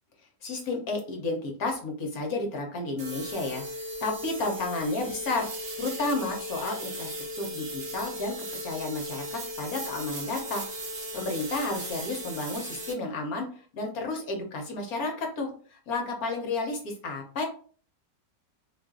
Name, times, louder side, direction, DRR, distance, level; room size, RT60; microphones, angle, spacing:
voice 1, 0.4-3.6 4.0-5.5 5.8-8.3 8.6-10.6 11.1-13.5 13.7-17.4, left 3 dB, 60° left, 1 dB, 1.3 m, -32 dB
sound 1, 3.0-12.9, equal, 45° right, 1.0 m, -37 dB
3.9 x 2.5 x 3.6 m, 0.42 s
omnidirectional pair, 1.9 m